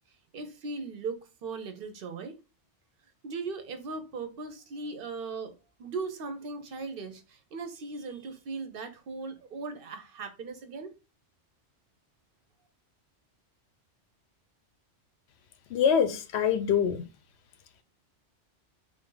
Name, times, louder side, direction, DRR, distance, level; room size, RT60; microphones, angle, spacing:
voice 1, 0.3-2.4 3.2-5.5 5.8-10.9, right 4 dB, 55° right, 0.8 m, -38 dB
voice 2, 15.7-17.0, left 7 dB, 70° left, 0.8 m, -24 dB
3.9 x 2.6 x 3.8 m
omnidirectional pair, 1.2 m